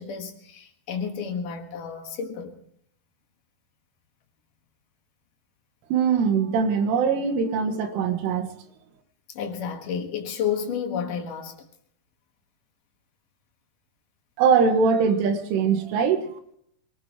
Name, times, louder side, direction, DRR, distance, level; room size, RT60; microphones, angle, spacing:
voice 1, 0.0-2.5 9.3-11.6, left 7 dB, 60° left, 2.4 m, -31 dB
voice 2, 5.9-8.5 14.4-16.3, right 6 dB, 85° right, 3.9 m, -22 dB
25.0 x 18.5 x 3.0 m
omnidirectional pair, 5.6 m